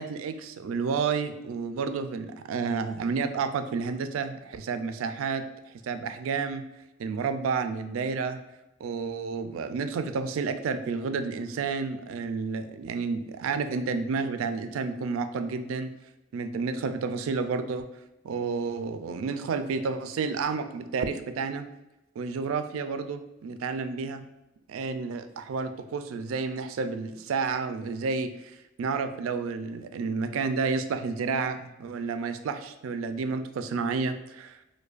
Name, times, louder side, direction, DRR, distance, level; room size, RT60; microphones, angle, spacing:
voice 1, 0.0-6.6 7.0-8.4 8.8-15.9 16.3-17.9 18.2-21.7 22.2-24.2 24.7-34.6, right 5 dB, 90° right, 9 dB, 0.3 m, -30 dB
4.8 x 2.2 x 2.4 m, 0.96 s
head